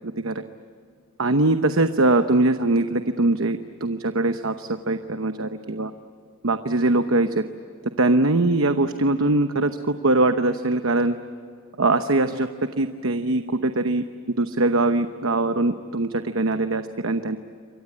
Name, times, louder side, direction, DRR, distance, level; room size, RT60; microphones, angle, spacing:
voice 1, 0.0-0.4 1.2-5.9 6.4-7.4 8.0-11.2 11.8-12.5 12.8-14.0 14.4-17.4, right 2 dB, 65° right, 8 dB, 1.0 m, -22 dB
28.0 x 23.5 x 8.7 m, 2.3 s
head